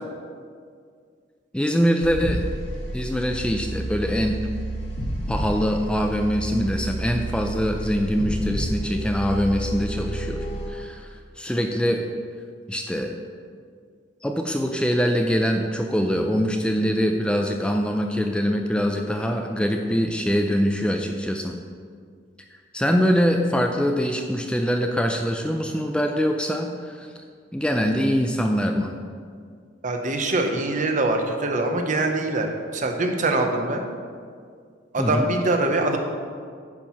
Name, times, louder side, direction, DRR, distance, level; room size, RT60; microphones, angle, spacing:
voice 1, 1.5-2.4 2.9-4.4 5.3-12.0 12.7-13.1 14.2-21.6 22.7-27.1 27.5-28.9 35.0-35.3, equal, 5° left, 3 dB, 0.4 m, -23 dB
sound 1, 2.0-10.7, right 1 dB, 80° left, 1.7 m, -30 dB
voice 2, 29.8-33.8 34.9-36.0, right 2 dB, 45° right, 4 dB, 0.9 m, -23 dB
9.8 x 4.6 x 5.7 m, 2.1 s
head